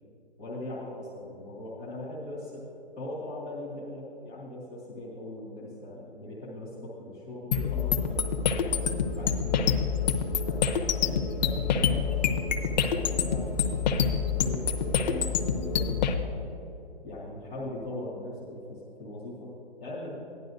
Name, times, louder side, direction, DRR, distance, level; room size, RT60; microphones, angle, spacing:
voice 1, 0.4-2.6 3.0-8.3 8.6-10.6 11.0-16.0 17.0-19.5 19.8-20.3, left 1 dB, 5° left, -9 dB, 0.3 m, -40 dB
sound 1, 7.5-16.1, left 6 dB, 40° left, 0.7 m, -27 dB
14.0 x 10.5 x 2.6 m, 3.0 s
hypercardioid pair, 145°, 32 cm